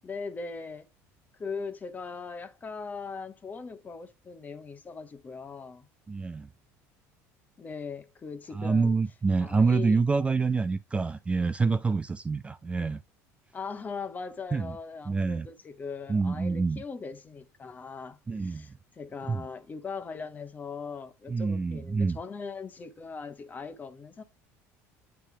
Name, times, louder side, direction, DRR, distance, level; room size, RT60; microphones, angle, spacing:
voice 1, 0.0-0.9 1.4-5.9 7.6-8.9 9.4-10.0 13.5-24.2, left 5 dB, 25° left, 1.0 m, -40 dB
voice 2, 6.1-6.5 8.5-13.0 14.5-14.8 15.1-15.5 16.1-16.8 18.3-18.8 19.2-19.5 21.3-22.2, right 4 dB, 15° right, 0.4 m, -27 dB
9.2 x 3.3 x 3.3 m
supercardioid pair, 115°, 7 cm